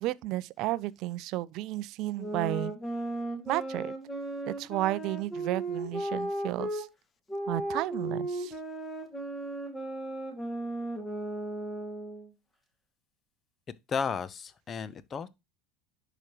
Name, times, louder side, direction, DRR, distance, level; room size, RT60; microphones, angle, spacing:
voice 1, 0.0-2.7 3.5-3.9 4.5-6.9 7.5-8.5, right 17 dB, 55° right, 0.4 m, -32 dB
sound 1, 2.2-6.9 7.3-12.3, right 1 dB, 15° left, 2.1 m, -35 dB
voice 2, 13.9-15.3, left 6 dB, 35° left, 0.7 m, -33 dB
10.5 x 5.0 x 3.0 m
hypercardioid pair, 80°, 0 cm